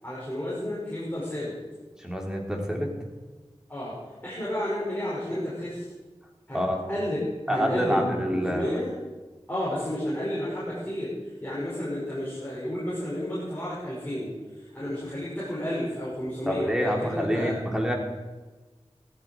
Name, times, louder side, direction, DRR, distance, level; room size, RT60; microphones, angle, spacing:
voice 1, 0.0-1.6 3.7-5.9 6.5-6.6 6.9-7.2 7.5-8.9 9.5-11.1 11.4-17.6, left 1 dB, 15° left, -9 dB, 6.1 m, -31 dB
voice 2, 2.0-2.9 6.5-6.8 7.5-8.8 16.5-17.9, equal, 5° right, 0 dB, 3.5 m, -27 dB
16.0 x 13.5 x 4.7 m, 1.2 s
wide cardioid pair, 40°, 11 cm